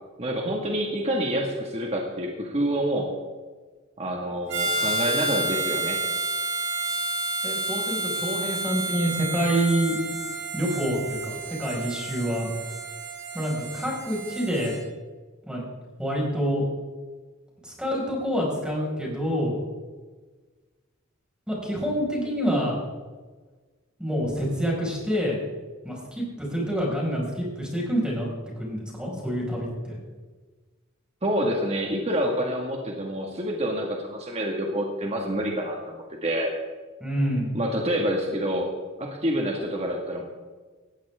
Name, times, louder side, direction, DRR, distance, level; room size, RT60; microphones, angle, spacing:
voice 1, 0.2-3.1 4.0-6.0 31.2-36.5 37.5-38.7 39.0-40.2, equal, 35° right, 0 dB, 2.0 m, -27 dB
Harmonica, 4.5-14.8, right 2 dB, 60° right, 5.4 m, -30 dB
voice 2, 7.4-10.0 10.5-12.5 13.3-14.8 15.5-15.6 16.0-16.7 17.6-19.5 21.5-22.8 24.0-25.4 25.8-28.3 28.6-30.0 37.0-37.5, equal, 5° right, -3 dB, 5.8 m, -27 dB
18.5 x 15.5 x 3.7 m, 1.4 s
head